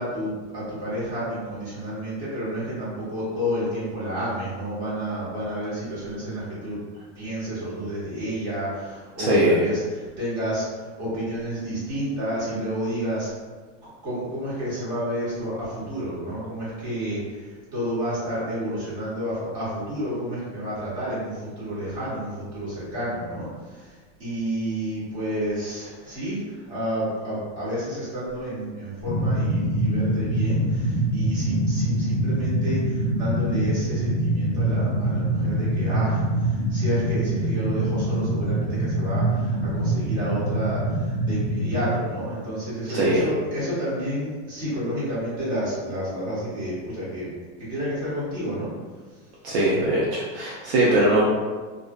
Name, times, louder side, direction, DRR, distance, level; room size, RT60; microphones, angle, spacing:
voice 1, 0.0-6.8 7.1-13.3 13.8-47.3 47.6-48.7, equal, 35° right, -9 dB, 1.2 m, -30 dB
voice 2, 9.2-9.6 42.9-43.3 49.4-51.2, right 1 dB, 65° right, -5 dB, 0.6 m, -21 dB
sound 1, 29.0-41.9, right 1 dB, 40° left, 0.7 m, -24 dB
2.5 x 2.3 x 2.2 m, 1.4 s
supercardioid pair, 165°, 35 cm